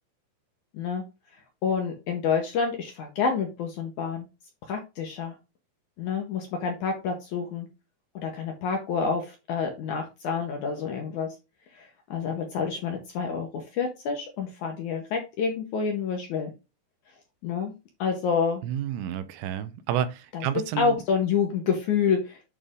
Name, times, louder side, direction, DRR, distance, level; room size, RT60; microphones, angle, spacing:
voice 1, 1.6-4.3 4.7-5.4 6.0-7.7 8.2-11.3 11.7-16.5 17.4-17.7 18.0-18.6 20.3-22.4, left 6 dB, 70° left, 2.0 m, -28 dB
voice 2, 18.6-21.0, right 10 dB, 80° right, 2.4 m, -30 dB
8.8 x 3.3 x 3.6 m
omnidirectional pair, 4.5 m